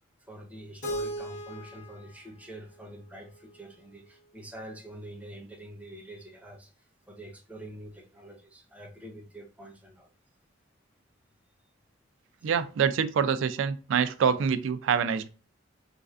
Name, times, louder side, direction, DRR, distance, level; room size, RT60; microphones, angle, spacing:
voice 1, 0.3-6.7 7.1-10.1 12.4-12.5, right 1 dB, 10° right, 0.5 m, -46 dB
Keyboard (musical), 0.8-3.7, right 1 dB, 45° left, 1.0 m, -39 dB
voice 2, 12.4-15.3, right 7 dB, 70° right, 0.3 m, -26 dB
3.1 x 2.4 x 2.4 m
head